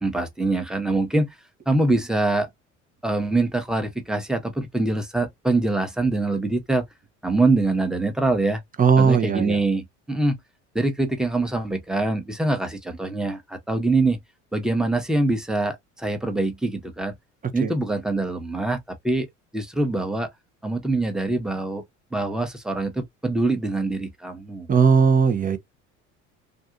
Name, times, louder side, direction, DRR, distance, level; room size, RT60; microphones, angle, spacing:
voice 1, 0.0-1.3 1.7-2.5 3.0-6.8 7.2-8.6 9.0-10.4 10.7-14.2 14.5-17.1 17.5-19.3 19.5-20.3 20.6-21.8 22.1-24.7, right 2 dB, ahead, 1.0 m, -24 dB
voice 2, 8.8-9.6 17.6-17.7 24.7-25.6, right 5 dB, 20° right, 0.7 m, -18 dB
2.6 x 2.4 x 2.3 m
hypercardioid pair, 70°, 37 cm